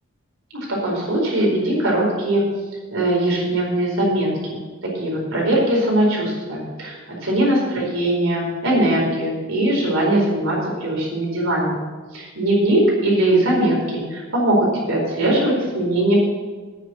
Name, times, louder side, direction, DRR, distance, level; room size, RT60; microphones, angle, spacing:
voice 1, 0.7-2.4 2.9-4.6 4.9-6.9 7.2-11.8 12.1-16.1, right 1 dB, 70° right, -3 dB, 4.6 m, -20 dB
9.1 x 7.7 x 8.2 m, 1.4 s
head